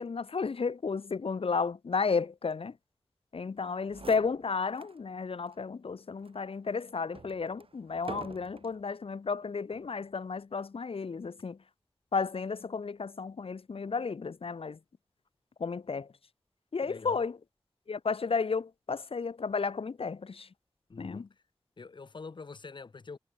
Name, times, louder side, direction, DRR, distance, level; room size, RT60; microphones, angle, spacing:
voice 1, 0.0-2.8 3.3-11.6 12.1-14.8 15.6-16.1 16.7-17.4 17.9-20.5 21.0-21.3, left 5 dB, 90° left, 0.9 m, -33 dB
sound 1, 3.6-3.7 3.9-5.0 5.5-5.6 6.2-8.8 9.6-10.0, right 4 dB, 80° right, 2.5 m, -47 dB
voice 2, 16.9-17.2 20.9-21.3 21.8-23.2, left 4 dB, 55° left, 0.6 m, -45 dB
wide cardioid pair, 60°, 9 cm